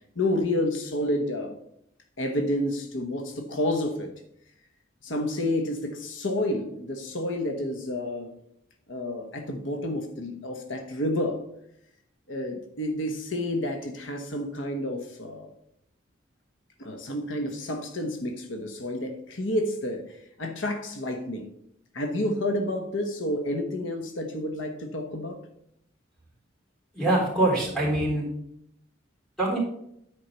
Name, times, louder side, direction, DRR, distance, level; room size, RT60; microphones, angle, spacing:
voice 1, 0.1-1.6 2.2-4.1 5.0-8.3 8.9-11.4 12.3-15.5 16.8-21.5 21.9-25.4, left 1 dB, 75° left, 4 dB, 1.2 m, -30 dB
voice 2, 26.9-28.3 29.4-29.6, right 1 dB, 5° left, -6 dB, 3.7 m, -24 dB
9.9 x 4.7 x 5.6 m, 0.74 s
head